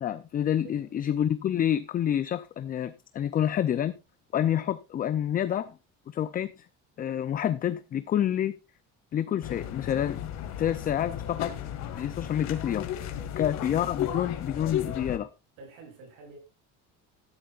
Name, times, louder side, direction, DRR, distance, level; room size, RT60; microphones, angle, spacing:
voice 1, 0.0-4.0 4.3-5.7 6.1-6.5 7.0-8.5 9.1-10.2 10.6-11.5 12.0-12.9 13.4-15.3, left 10 dB, 25° left, 0.5 m, -28 dB
voice 2, 0.6-0.9 13.2-13.5 15.6-16.4, right 3 dB, 85° right, 7.6 m, -49 dB
sound 1, 9.4-15.2, left 10 dB, 55° left, 2.1 m, -34 dB
14.0 x 11.5 x 2.5 m
cardioid pair, 170°, 32 cm